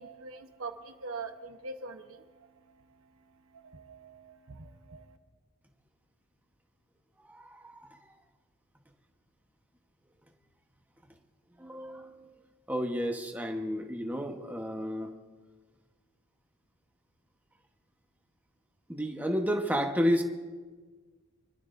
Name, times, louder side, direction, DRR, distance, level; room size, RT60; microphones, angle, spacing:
voice 1, 0.0-2.2 3.5-5.2, right 3 dB, 70° right, 6 dB, 1.0 m, -43 dB
voice 2, 7.3-7.9 11.6-12.3 12.7-15.1 18.9-20.2, equal, 10° right, 2 dB, 1.1 m, -31 dB
26.0 x 12.0 x 2.6 m, 1.4 s
head